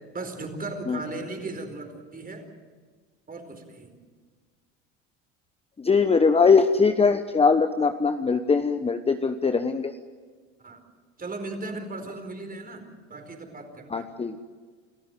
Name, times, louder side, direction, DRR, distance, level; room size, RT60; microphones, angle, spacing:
voice 1, 0.1-2.5 3.3-3.9 10.6-10.8 11.2-13.9, right 2 dB, 25° right, 6 dB, 4.5 m, -37 dB
voice 2, 5.8-9.9 13.9-14.4, left 5 dB, 15° left, 8 dB, 1.1 m, -21 dB
29.0 x 14.0 x 9.2 m, 1.5 s
hypercardioid pair, 85°, 36 cm